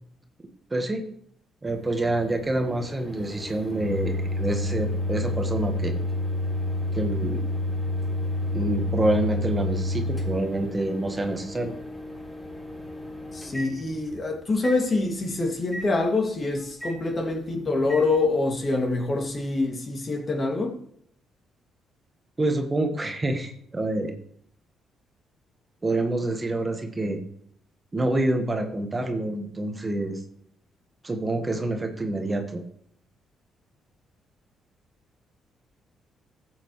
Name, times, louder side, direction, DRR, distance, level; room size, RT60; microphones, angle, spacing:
voice 1, 0.7-1.0 1.6-5.9 6.9-7.4 8.5-11.7 22.4-24.1 25.8-27.2 27.9-30.2 31.0-32.6, right 2 dB, 25° right, 1.4 m, -27 dB
Microwave oven, 1.7-14.2 14.6-14.8 15.7-15.9 16.8-17.0 17.9-18.1, left 1 dB, 10° left, 4.1 m, -30 dB
voice 2, 13.3-20.7, left 3 dB, 40° left, 2.3 m, -25 dB
14.5 x 7.8 x 3.2 m
cardioid pair, 90°, 0 cm